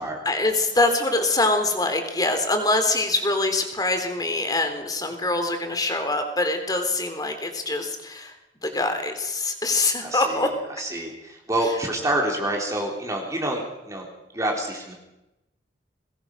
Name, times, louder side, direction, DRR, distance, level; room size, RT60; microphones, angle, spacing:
voice 1, 0.3-8.4 8.6-10.5, left 2 dB, 20° left, 6 dB, 3.6 m, -24 dB
voice 2, 10.0-14.1 14.3-14.9, right 1 dB, 20° right, 0 dB, 3.8 m, -27 dB
22.5 x 20.5 x 6.3 m, 0.92 s
head